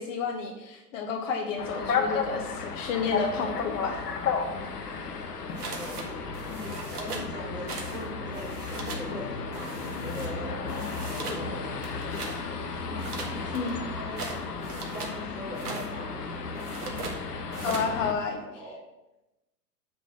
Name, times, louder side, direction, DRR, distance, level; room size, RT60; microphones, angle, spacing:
voice 1, 0.0-4.1 13.5-13.8 17.6-18.4, left 5 dB, 50° left, 2 dB, 1.7 m, -31 dB
sound 1, 1.6-18.1, left 5 dB, 65° left, 1.3 m, -34 dB
voice 2, 5.5-10.6 10.9-11.7 12.4-14.2 14.6-16.3 18.3-18.8, equal, 10° right, -2 dB, 1.7 m, -42 dB
sound 2, 5.6-6.1 6.3-7.3 7.7-8.0 8.3-9.1 9.5-10.3 10.7-11.4 11.8-12.4 13.0-15.2 15.5-15.9 16.6-17.2 17.5-17.9, right 4 dB, 65° right, 1.8 m, -39 dB
9.2 x 4.1 x 6.1 m, 0.96 s
figure-of-eight pair, 110°, 50 cm